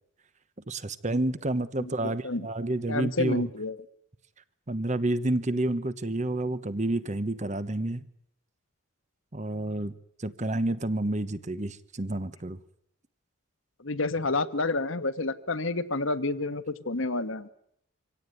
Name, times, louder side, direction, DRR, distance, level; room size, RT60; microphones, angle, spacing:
voice 1, 0.7-3.5 4.7-8.0 9.3-9.9 10.2-12.6, right 1 dB, 35° right, 14 dB, 1.0 m, -29 dB
voice 2, 1.8-2.5 2.9-3.8 13.8-17.5, left 2 dB, 65° left, 11 dB, 1.3 m, -29 dB
25.0 x 17.0 x 9.5 m, 0.73 s
head